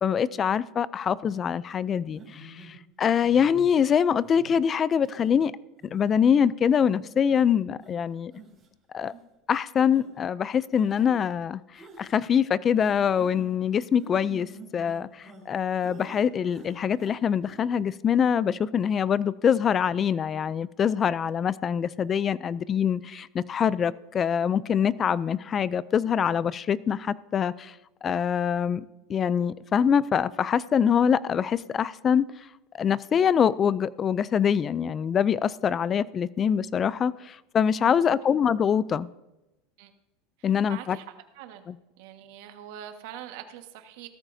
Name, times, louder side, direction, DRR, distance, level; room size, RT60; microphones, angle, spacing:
voice 1, 0.0-5.5 5.9-8.3 8.9-9.1 9.5-27.7 28.0-28.8 29.1-32.3 32.7-39.1 40.4-41.0 41.7-41.8, left 8 dB, 25° left, 0.4 m, -24 dB
sound 1, 1.3-1.5 2.1-2.7 3.2-3.7 4.2-4.5 5.1-5.3 5.8-6.3 6.8-6.9 7.3-7.5 7.8-7.9 8.3-8.7 9.0-9.2 9.9-10.1 10.7-11.3 11.7-12.1 12.8-13.5 14.0-15.5 15.8-16.2 16.5-17.2 17.4-17.6, right 3 dB, 20° right, 5.5 m, -47 dB
voice 2, 40.4-41.0 41.3-41.6 42.0-44.1, right 10 dB, 70° right, 1.5 m, -43 dB
17.0 x 13.5 x 2.7 m
supercardioid pair, 140°, 0 cm